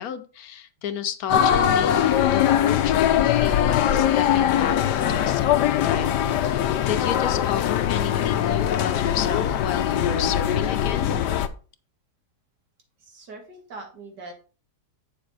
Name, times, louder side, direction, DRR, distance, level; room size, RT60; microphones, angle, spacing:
voice 1, 0.0-11.2, left 9 dB, 70° left, 11 dB, 1.1 m, -32 dB
sound 1, 1.3-11.5, left 10 dB, 85° left, 1.3 m, -21 dB
voice 2, 13.0-14.3, right 3 dB, 90° right, 2 dB, 2.6 m, -41 dB
8.2 x 6.9 x 3.3 m, 0.36 s
omnidirectional pair, 1.8 m